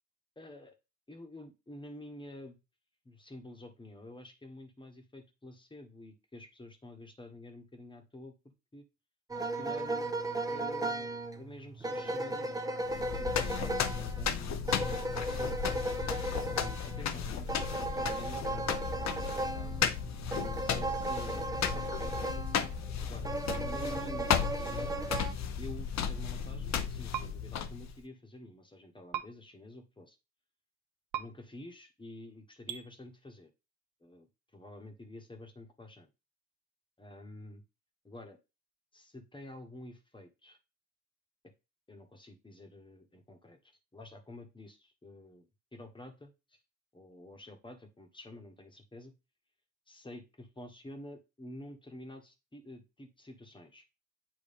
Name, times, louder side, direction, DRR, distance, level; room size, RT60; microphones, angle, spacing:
voice 1, 0.4-0.8 1.1-2.6 3.0-8.8 9.4-12.6 13.2-15.6 16.4-19.8 20.3-22.4 23.0-25.0 25.6-30.2 31.1-33.5 34.0-34.3 34.5-36.1 37.0-37.6 38.0-38.4 38.9-40.6 41.9-46.6 46.9-49.1 49.9-53.8, left 1 dB, 15° left, 5 dB, 1.2 m, -49 dB
sound 1, 9.3-22.7 23.2-25.3, right 2 dB, 10° right, 0.7 m, -36 dB
sound 2, 12.9-28.0, left 7 dB, 65° left, 0.7 m, -34 dB
sound 3, 27.1-27.3 29.1-29.3 31.1-31.2 32.7-32.8, right 12 dB, 85° right, 0.7 m, -35 dB
8.4 x 3.1 x 3.6 m, 0.26 s
cardioid pair, 85°, 30 cm